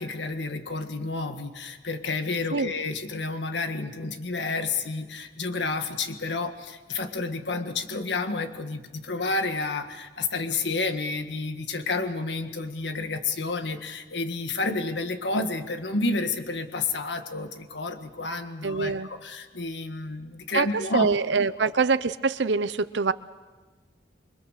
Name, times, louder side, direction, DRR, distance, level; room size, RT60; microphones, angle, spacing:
voice 1, 0.0-21.1 21.6-21.7, left 3 dB, 80° left, 7 dB, 1.7 m, -30 dB
voice 2, 18.6-19.1 20.5-23.1, right 4 dB, 80° right, 14 dB, 0.7 m, -24 dB
28.0 x 22.5 x 6.6 m, 1.3 s
head